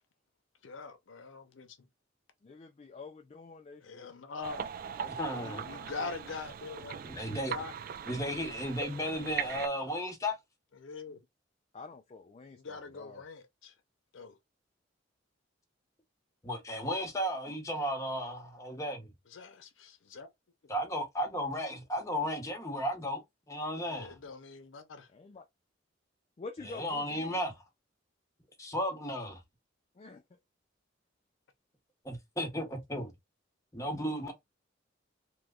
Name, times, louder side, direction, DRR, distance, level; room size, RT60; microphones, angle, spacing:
voice 1, 0.6-1.8 3.8-4.7 5.3-7.0 7.3-7.7 10.8-11.2 12.6-13.7 14.1-14.3 19.3-20.3 23.9-25.1, left 4 dB, 80° left, 0.6 m, -43 dB
voice 2, 2.4-4.1 5.0-6.1 11.7-13.2 25.1-25.5 26.4-27.4 30.0-30.2, left 4 dB, 35° left, 0.4 m, -48 dB
sound 1, 4.4-9.7, right 8 dB, 50° right, 0.3 m, -40 dB
voice 3, 5.2-5.7 7.0-7.6 8.0-10.4 16.4-19.1 20.7-23.2 23.5-24.2 26.7-27.5 28.6-29.4 32.0-33.1 33.7-34.3, equal, 15° left, 0.9 m, -34 dB
3.0 x 2.1 x 3.5 m
head